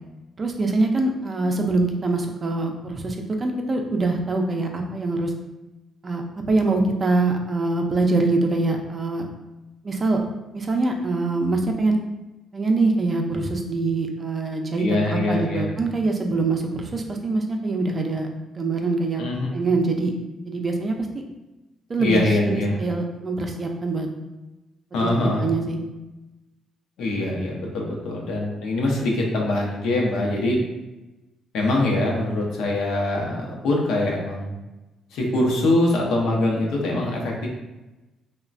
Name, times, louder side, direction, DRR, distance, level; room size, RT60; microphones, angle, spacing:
voice 1, 0.4-5.3 6.0-9.3 9.8-10.3 10.5-12.0 12.5-18.3 18.5-19.2 19.5-20.1 20.4-21.2 21.9-24.1 25.2-25.8, right 3 dB, 35° right, 3 dB, 0.4 m, -24 dB
voice 2, 14.8-15.7 19.2-19.5 22.0-22.8 24.9-25.5 27.0-30.6 31.5-34.5 35.1-37.5, left 2 dB, 85° left, -1 dB, 0.6 m, -23 dB
3.1 x 2.1 x 2.4 m, 1.0 s
cardioid pair, 90°, 0 cm